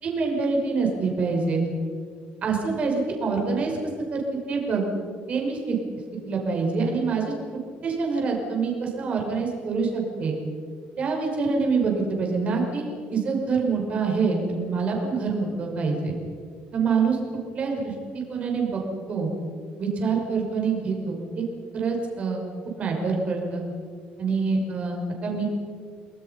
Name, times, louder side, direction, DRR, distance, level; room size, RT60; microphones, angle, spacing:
voice 1, 0.0-1.6 2.4-3.8 4.1-4.9 5.3-5.8 6.3-7.3 7.8-10.4 11.0-12.8 13.1-16.1 16.7-17.2 17.5-18.8 19.1-19.3 19.8-21.4 21.7-22.4 22.8-23.6 24.2-25.4, right 4 dB, 40° right, 0 dB, 5.7 m, -25 dB
30.0 x 20.5 x 5.7 m, 2.1 s
cardioid pair, 160°, 4 cm